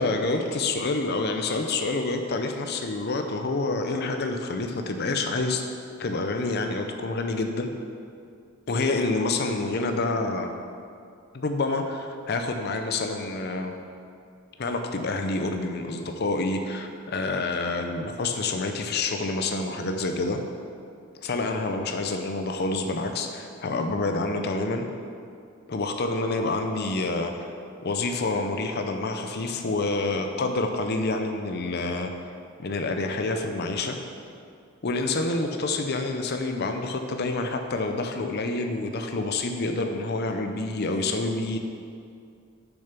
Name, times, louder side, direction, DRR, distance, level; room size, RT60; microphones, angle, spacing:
voice 1, 0.0-5.6 6.0-7.7 8.7-10.5 11.3-13.8 14.6-20.4 21.2-24.9 25.7-27.3 27.8-32.1 32.6-34.0 34.8-41.6, left 3 dB, 50° left, 5 dB, 0.6 m, -27 dB
7.1 x 6.7 x 5.8 m, 2.4 s
head